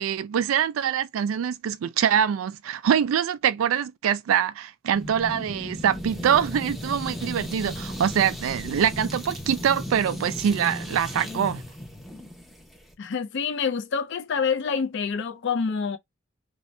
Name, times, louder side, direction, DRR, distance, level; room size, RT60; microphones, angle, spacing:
voice 1, 0.0-11.6, right 8 dB, 90° right, 0.3 m, -24 dB
sound 1, 4.9-12.9, equal, ahead, 0.7 m, -35 dB
voice 2, 13.0-16.0, left 6 dB, 65° left, 0.5 m, -27 dB
2.6 x 2.1 x 3.1 m
head